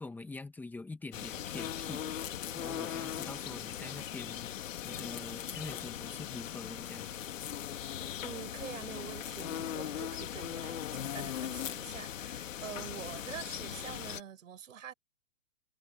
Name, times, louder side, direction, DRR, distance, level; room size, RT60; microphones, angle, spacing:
voice 1, 0.0-2.2 2.5-4.5 4.8-7.1, left 3 dB, 5° left, 1.6 m, -45 dB
sound 1, 1.1-14.2, left 10 dB, 85° left, 2.0 m, -39 dB
voice 2, 8.2-14.9, right 9 dB, 90° right, 7.0 m, -46 dB
hypercardioid pair, 160°, 38 cm